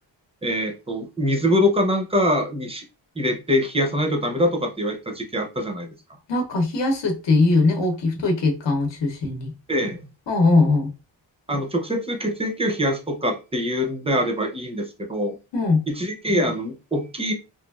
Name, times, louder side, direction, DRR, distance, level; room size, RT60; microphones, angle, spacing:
voice 1, 0.4-2.8 3.2-5.9 9.7-10.0 11.5-15.4 15.9-17.3, equal, 15° right, 4 dB, 0.5 m, -24 dB
voice 2, 6.3-9.5 10.3-10.9 15.5-15.9, left 3 dB, 70° left, 2 dB, 0.8 m, -20 dB
3.0 x 2.3 x 2.3 m, 0.30 s
wide cardioid pair, 135°, 44 cm